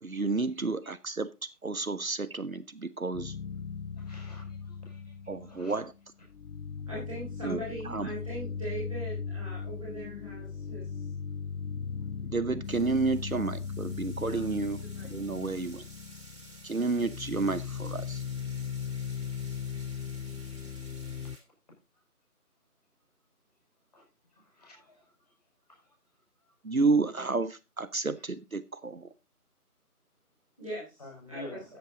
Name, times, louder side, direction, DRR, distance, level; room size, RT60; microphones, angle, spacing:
voice 1, 0.0-3.3 5.3-5.9 7.4-7.6 7.8-8.1 12.2-15.9 16.6-18.2 26.6-29.1, right 3 dB, 65° right, 1.0 m, -31 dB
sound 1, 3.1-6.0 6.3-21.4, left 6 dB, 75° left, 0.6 m, -38 dB
voice 2, 4.0-5.0 5.4-5.7 23.9-24.0 24.6-25.0 25.7-25.8 31.0-31.6, left 1 dB, 25° left, 5.7 m, -47 dB
voice 3, 6.9-10.9 14.1-14.4 14.9-15.0 16.7-17.1 30.6-31.6, right 1 dB, 5° left, 2.1 m, -40 dB
sound 2, 12.6-21.4, right 2 dB, 20° right, 2.6 m, -53 dB
13.5 x 8.3 x 3.8 m
figure-of-eight pair, 170°, 46 cm